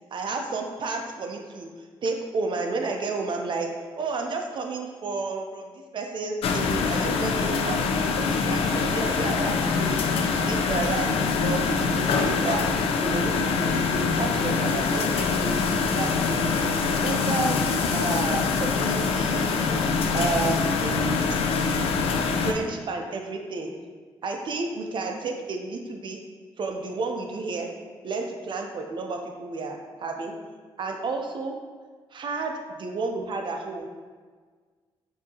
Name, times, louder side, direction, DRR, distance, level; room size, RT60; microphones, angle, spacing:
voice 1, 0.1-1.7 2.0-3.7 4.0-10.0 10.3-12.7 13.0-15.6 15.9-17.6 17.9-19.8 20.1-21.4 22.3-23.7 24.2-26.2 26.6-27.7 28.0-30.4 30.8-31.6 32.1-33.9, right 3 dB, 55° right, 3 dB, 0.6 m, -31 dB
sound 1, 6.4-22.5, left 5 dB, 80° left, 0.4 m, -24 dB
6.1 x 2.8 x 2.8 m, 1.5 s
cardioid pair, 75°, 10 cm